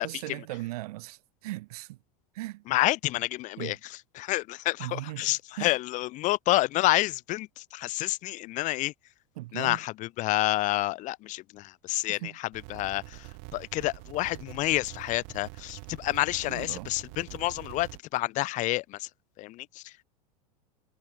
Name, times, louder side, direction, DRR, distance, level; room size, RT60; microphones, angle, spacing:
voice 1, 0.0-2.0 2.3-2.6 3.6-3.8 4.8-5.7 9.4-9.8 12.1-12.4 16.5-16.9, right 19 dB, 75° right, 0.8 m, -38 dB
voice 2, 2.7-3.8 4.2-8.9 9.5-19.1 19.4-20.0, left 18 dB, 40° left, 1.0 m, -29 dB
sound 1, 12.5-18.0, right 40 dB or more, 55° right, 1.8 m, -45 dB
supercardioid pair, 135°, 19 cm